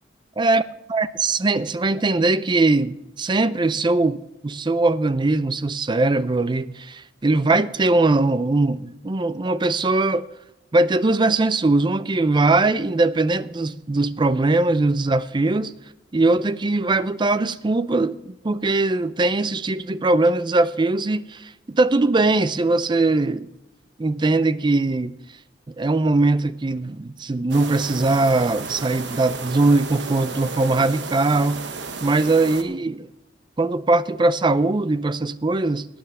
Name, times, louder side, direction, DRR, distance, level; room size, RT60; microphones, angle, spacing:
voice 1, 0.9-10.3 10.7-15.7 16.1-23.5 24.0-25.1 25.8-31.6 32.0-33.1 33.6-35.9, right 2 dB, 25° right, 0.5 m, -21 dB
sound 1, 27.5-32.6, right 4 dB, 80° right, 1.1 m, -33 dB
12.0 x 9.5 x 5.5 m
head